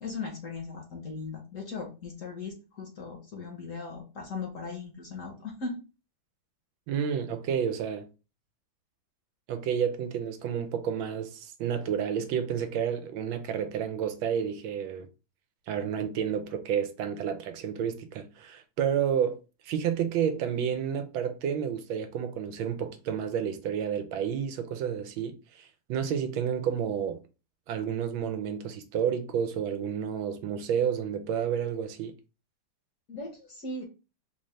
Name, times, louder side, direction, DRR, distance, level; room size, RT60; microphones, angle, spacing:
voice 1, 0.0-5.8 33.1-33.8, left 4 dB, 50° left, 1.1 m, -38 dB
voice 2, 6.9-8.1 9.5-15.1 15.7-27.2 27.7-32.1, right 8 dB, 85° right, 1.4 m, -30 dB
3.8 x 2.7 x 3.1 m
omnidirectional pair, 2.1 m